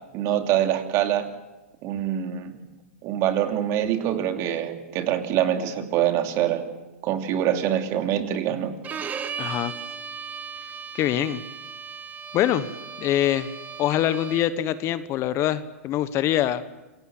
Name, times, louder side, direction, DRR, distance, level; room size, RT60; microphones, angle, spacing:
voice 1, 0.1-1.3 1.8-2.6 3.0-6.6 7.0-8.7, right 11 dB, 40° right, 5 dB, 2.9 m, -24 dB
Bowed string instrument, 8.8-14.7, right 7 dB, 20° right, 1.5 m, -36 dB
voice 2, 9.4-9.7 10.9-11.4 12.3-12.7 13.0-13.5 13.8-16.6, left 12 dB, 35° left, 13 dB, 1.2 m, -24 dB
27.0 x 18.0 x 7.8 m, 1.1 s
hypercardioid pair, 120°, 8 cm